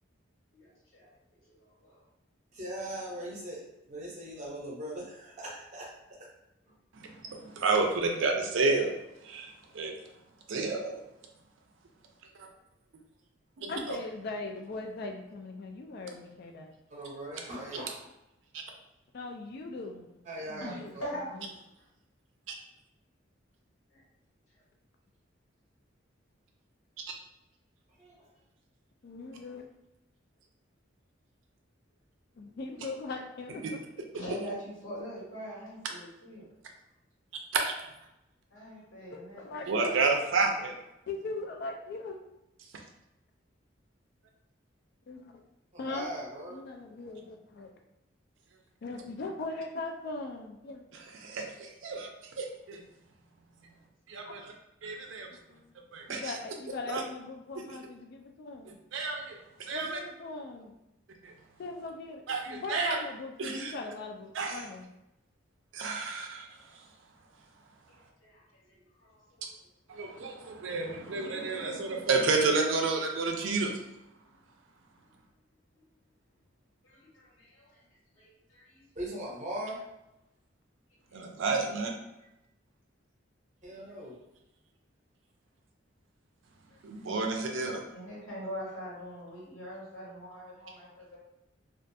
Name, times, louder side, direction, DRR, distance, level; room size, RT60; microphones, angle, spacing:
voice 1, 0.5-1.1 1.5-2.0 7.3-7.5 9.6-9.9 16.9-17.0 20.5-21.6 23.9-24.0 34.1-36.5 38.5-39.4 55.0-55.1 67.9-69.5 76.8-77.8 78.2-78.9 81.1-81.2 82.2-82.3 86.7-86.8 87.9-91.2, equal, 85° left, -6 dB, 1.2 m, -43 dB
voice 2, 2.5-5.9 6.2-6.3 16.9-18.1 20.3-21.1 28.0-28.3 45.7-46.6 79.0-79.9 83.6-84.2, right 1 dB, 40° right, -3 dB, 0.7 m, -40 dB
voice 3, 6.9-8.9 9.2-9.9 10.5-10.9 13.6-13.7 18.5-18.6 22.5-22.6 37.5-37.7 39.7-40.7 51.2-52.8 54.1-54.5 54.8-55.3 55.9-56.3 56.9-57.0 57.6-57.7 58.9-60.0 61.2-61.3 62.3-63.0 63.4-63.7 64.3-64.6 65.7-66.5 69.9-73.7 81.1-81.9 86.8-87.8, right 3 dB, 75° right, 3 dB, 0.4 m, -30 dB
voice 4, 13.7-16.7 19.1-20.2 20.5-20.9 21.3-21.5 29.0-29.7 32.4-33.8 39.1-40.0 41.1-42.2 45.1-45.4 45.8-46.1 46.5-47.7 48.8-50.8 54.2-54.3 55.3-55.7 56.1-58.8 59.7-60.8 61.6-64.9, left 3 dB, 55° left, 3 dB, 0.3 m, -40 dB
2.4 x 2.2 x 2.6 m, 0.89 s
head